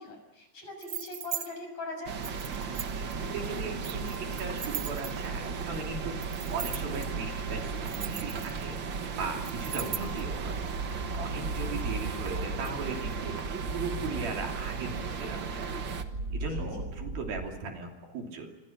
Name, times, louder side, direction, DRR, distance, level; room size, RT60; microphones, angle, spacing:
voice 1, 0.0-2.1 16.4-16.8, left 2 dB, 45° left, 4 dB, 7.7 m, -41 dB
sound 1, 0.8-1.5 2.2-3.1 3.8-5.4 6.2-7.0 7.7-8.8 9.4-10.2, right 9 dB, 50° right, 1.8 m, -38 dB
sound 2, 2.1-16.0, right 5 dB, 90° right, 1.0 m, -36 dB
voice 2, 3.0-10.6 11.1-15.8 16.3-18.5, right 3 dB, 70° right, 2 dB, 4.8 m, -38 dB
sound 3, 9.5-17.5, right 2 dB, 25° right, 4.0 m, -39 dB
27.5 x 26.5 x 6.0 m, 1.0 s
omnidirectional pair, 4.5 m